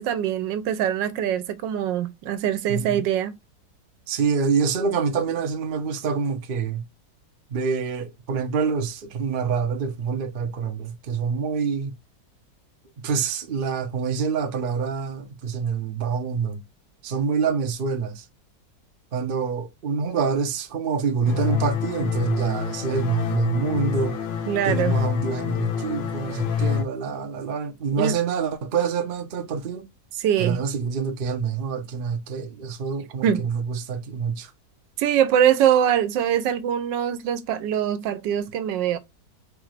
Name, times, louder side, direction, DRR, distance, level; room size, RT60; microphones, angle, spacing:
voice 1, 0.0-3.4 24.5-24.9 28.0-28.2 30.2-30.6 33.2-33.4 35.0-39.0, right 10 dB, 80° right, 1.3 m, -23 dB
voice 2, 2.7-3.0 4.1-6.8 7.5-11.9 13.0-16.6 17.0-18.2 19.1-24.2 24.6-29.9 30.4-34.5, right 6 dB, 65° right, 0.5 m, -26 dB
sound 1, 21.3-26.8, left 7 dB, 80° left, 1.4 m, -27 dB
4.6 x 2.4 x 3.1 m
omnidirectional pair, 2.0 m